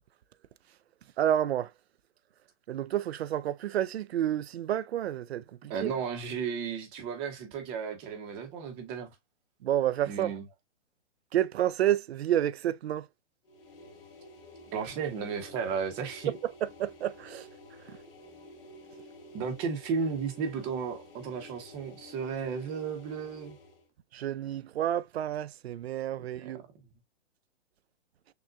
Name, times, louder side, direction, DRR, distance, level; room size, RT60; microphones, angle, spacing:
voice 1, 1.2-1.7 2.7-5.9 9.6-10.3 11.3-13.1 16.6-17.5 17.9-18.0 24.1-26.6, right 11 dB, 65° right, 0.5 m, -30 dB
voice 2, 5.7-9.1 10.1-10.4 14.7-16.3 19.3-23.6 26.4-26.5, right 6 dB, 15° right, 0.8 m, -34 dB
sound 1, 13.4-23.9, left 1 dB, 50° left, 1.8 m, -51 dB
6.5 x 2.4 x 2.4 m
hypercardioid pair, 160°, 35 cm